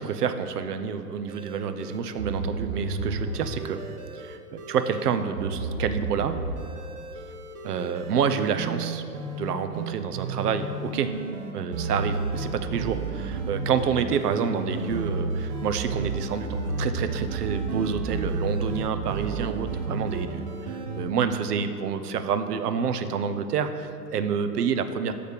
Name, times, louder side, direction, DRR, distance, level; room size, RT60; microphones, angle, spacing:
voice 1, 0.0-3.8 4.1-6.4 7.6-9.0 9.4-11.1 11.5-25.1, right 6 dB, 70° right, 10 dB, 0.7 m, -28 dB
sound 1, 1.3-21.1, right 3 dB, 25° right, 0.5 m, -32 dB
6.8 x 5.1 x 5.2 m, 2.6 s
hypercardioid pair, 120°, 49 cm